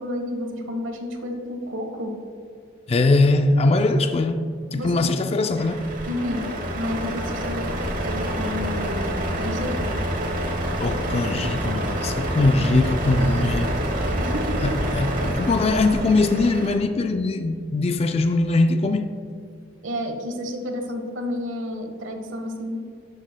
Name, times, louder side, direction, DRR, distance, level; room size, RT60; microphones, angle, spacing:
voice 1, 0.0-2.2 4.7-5.1 6.0-6.4 6.7-9.9 14.1-14.8 19.8-22.8, left 1 dB, 90° right, 1.2 m, -30 dB
voice 2, 2.9-4.4 4.7-5.9 10.8-13.7 14.6-19.1, left 2 dB, 30° left, 0.3 m, -21 dB
Truck, 5.5-16.7, equal, 45° right, 1.0 m, -27 dB
11.5 x 7.3 x 2.2 m
head